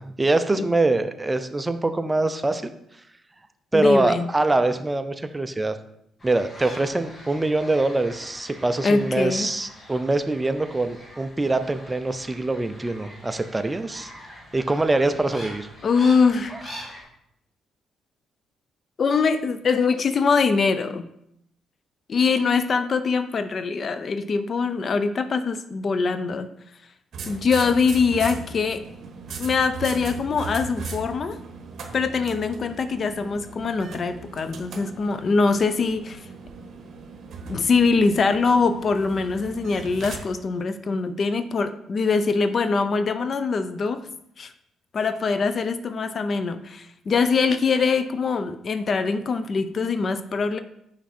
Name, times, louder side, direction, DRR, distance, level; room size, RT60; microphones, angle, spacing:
voice 1, 0.0-2.7 3.7-5.7 6.2-14.1 14.5-15.7, right 2 dB, 15° right, 10 dB, 0.5 m, -24 dB
voice 2, 3.7-4.3 8.8-9.5 15.8-16.6 19.0-21.1 22.1-26.5 27.3-28.8 29.4-31.4 31.9-36.2 37.5-44.0 44.4-44.5 44.9-50.6, left 4 dB, 45° left, 11 dB, 0.5 m, -23 dB
sound 1, 6.2-17.0, equal, 30° left, 2.1 m, -44 dB
sound 2, 27.1-40.2, right 4 dB, 60° right, 1.1 m, -38 dB
5.8 x 4.8 x 4.3 m, 0.76 s
cardioid pair, 90°, 0 cm